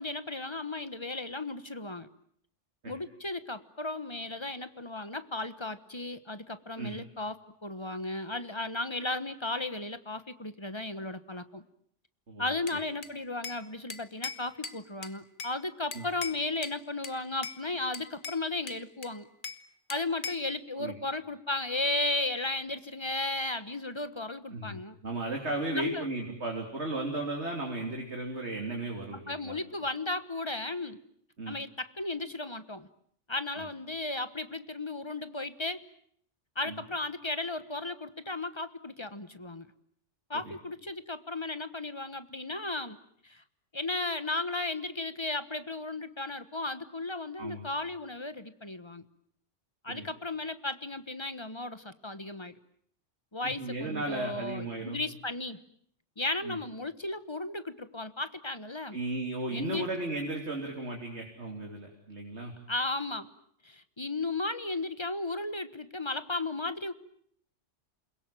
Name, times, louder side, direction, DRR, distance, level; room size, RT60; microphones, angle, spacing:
voice 1, 0.0-2.1 2.9-11.6 12.4-19.3 19.9-25.0 25.7-26.1 29.3-31.0 31.5-32.9 33.3-35.8 36.5-39.7 40.3-43.0 43.2-43.4 43.7-49.0 49.8-52.5 53.3-55.6 56.2-59.0 59.5-59.9 62.7-63.3 63.6-66.9, left 2 dB, 25° left, 12 dB, 1.3 m, -35 dB
voice 2, 12.3-12.8 15.9-16.1 20.8-21.0 24.5-29.6 31.4-31.6 33.6-33.7 36.7-36.8 40.3-40.6 47.4-47.7 49.9-50.1 53.6-55.0 56.4-56.6 58.9-62.5, right 2 dB, 65° right, 1 dB, 3.8 m, -35 dB
Bell / Glass, 12.7-13.6 13.9-15.6 15.9-16.8 17.0-17.6 17.9-19.6 19.9-20.5, left 4 dB, 45° left, 1.5 m, -41 dB
28.5 x 22.0 x 9.2 m, 0.67 s
omnidirectional pair, 1.2 m